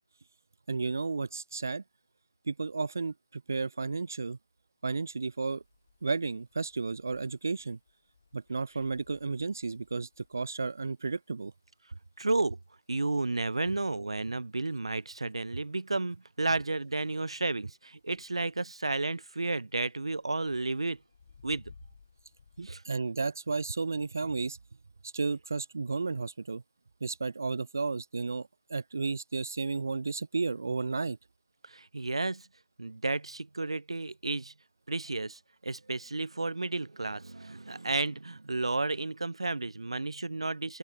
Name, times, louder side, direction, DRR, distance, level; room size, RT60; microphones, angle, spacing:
voice 1, 0.7-1.8 2.5-4.4 4.8-5.6 6.0-7.8 8.3-11.5 22.6-24.6 25.0-26.6 27.0-31.2, right 4 dB, 35° right, 0.9 m, -33 dB
sound 1, 5.6-22.7, left 5 dB, 25° left, 3.5 m, -62 dB
voice 2, 12.2-12.6 12.9-21.0 21.4-21.7 22.6-22.8 31.6-32.5 32.8-34.5 34.9-40.8, right 3 dB, 75° right, 0.5 m, -32 dB
open air
figure-of-eight pair, 180°, 3 cm